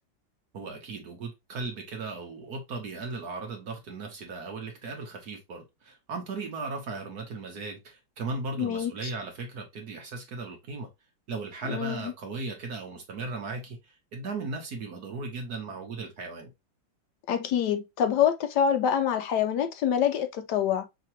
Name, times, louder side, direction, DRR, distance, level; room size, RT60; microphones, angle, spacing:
voice 1, 0.5-10.9 11.3-16.5, right 3 dB, 55° right, 1.4 m, -37 dB
voice 2, 8.6-8.9 11.7-12.1 17.3-20.8, left 8 dB, 70° left, 1.2 m, -26 dB
5.7 x 3.0 x 2.8 m
omnidirectional pair, 2.1 m